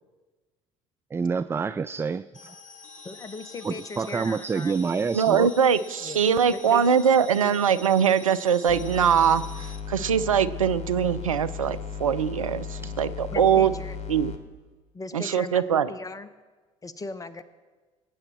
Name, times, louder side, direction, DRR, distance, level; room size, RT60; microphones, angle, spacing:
voice 1, 1.1-2.6 3.6-5.5, right 5 dB, 15° right, 14 dB, 0.3 m, -27 dB
sound 1, 2.3-9.8, left 3 dB, 80° left, 1.0 m, -46 dB
voice 2, 3.0-4.8 6.0-6.2 6.5-6.9 7.3-7.6 13.3-14.0 14.9-16.3 16.8-17.4, left 3 dB, 20° left, 13 dB, 1.0 m, -38 dB
voice 3, 5.1-9.4 9.9-13.7 14.1-14.3 15.1-15.9, right 7 dB, 80° right, 13 dB, 0.5 m, -22 dB
sound 2, 8.7-14.4, left 7 dB, 40° left, 1.5 m, -36 dB
21.0 x 8.9 x 4.4 m, 1.3 s
figure-of-eight pair, 60°, 17 cm